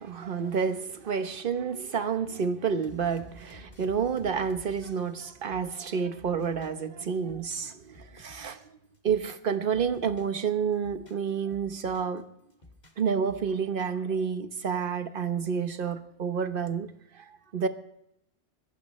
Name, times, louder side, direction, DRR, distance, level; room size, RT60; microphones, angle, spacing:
voice 1, 0.0-8.6 9.0-12.3 13.0-17.7, right 6 dB, 50° right, 1.2 m, -29 dB
sound 1, 2.8-6.9 7.2-8.6 8.9-10.4 10.7-12.2 12.5-13.5, left 2 dB, 35° left, 2.1 m, -53 dB
22.5 x 15.5 x 3.2 m
omnidirectional pair, 1.2 m